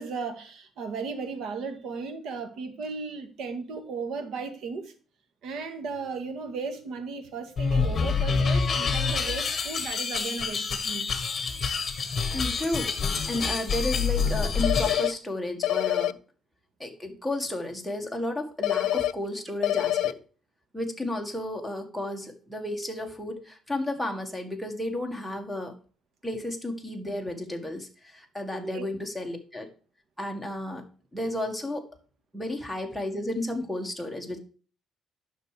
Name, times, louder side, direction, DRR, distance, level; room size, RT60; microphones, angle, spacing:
voice 1, 0.0-4.9 5.4-11.1 28.5-28.9, right 4 dB, 70° right, 1.9 m, -35 dB
Distorted Tech Noise, 7.6-15.1, left 5 dB, 30° left, 1.7 m, -27 dB
voice 2, 12.3-16.1 16.8-20.2 20.7-25.7 26.2-29.7 30.2-31.8 32.3-34.4, left 1 dB, ahead, 1.7 m, -33 dB
sound 1, 14.6-15.1 15.6-16.1 18.6-19.1 19.6-20.1, left 13 dB, 85° left, 0.4 m, -25 dB
10.5 x 6.2 x 4.9 m
cardioid pair, 135°, 0 cm